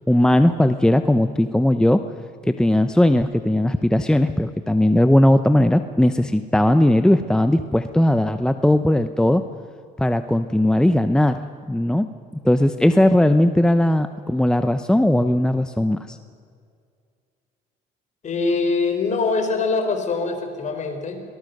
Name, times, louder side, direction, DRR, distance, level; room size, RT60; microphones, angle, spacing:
voice 1, 0.1-2.0 2.5-9.4 10.0-11.4 11.7-12.1 12.4-16.2, left 1 dB, 5° left, 9 dB, 0.8 m, -18 dB
voice 2, 18.2-21.2, left 4 dB, 45° left, 5 dB, 4.1 m, -23 dB
24.0 x 19.0 x 6.6 m, 2.2 s
cardioid pair, 110°, 17 cm